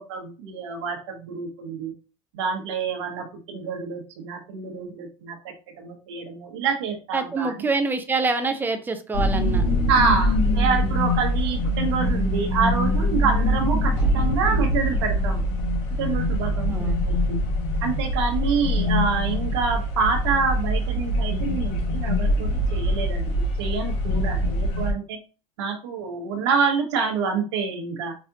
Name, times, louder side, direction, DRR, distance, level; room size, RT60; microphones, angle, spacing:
voice 1, 0.0-1.9 2.3-7.7 9.9-15.4 16.0-17.4 17.8-25.2 25.6-28.1, right 5 dB, 90° right, 3 dB, 1.1 m, -27 dB
voice 2, 7.1-9.7 16.7-17.1, right 4 dB, 15° right, 7 dB, 0.7 m, -26 dB
sound 1, 9.1-24.9, equal, 60° left, 2.5 m, -23 dB
4.8 x 3.3 x 2.8 m, 0.33 s
supercardioid pair, 115°, 14 cm